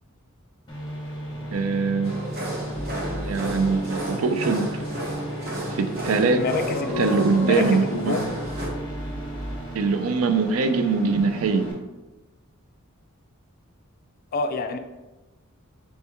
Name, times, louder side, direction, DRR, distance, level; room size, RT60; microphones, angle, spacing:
sound 1, 0.7-11.7, right 1 dB, 20° left, 1.1 m, -36 dB
voice 1, 1.5-2.2 3.1-4.7 5.7-6.4 7.0-8.2 9.7-11.7, right 4 dB, 65° right, 9 dB, 0.4 m, -22 dB
sound 2, 2.0-8.7, right 1 dB, 45° right, 1.0 m, -32 dB
sound 3, 2.7-9.6, right 1 dB, 20° right, 1.2 m, -38 dB
voice 2, 6.3-7.1 7.4-8.3 14.3-14.8, left 3 dB, 40° left, 8 dB, 0.3 m, -27 dB
4.3 x 2.9 x 3.4 m, 1.1 s
head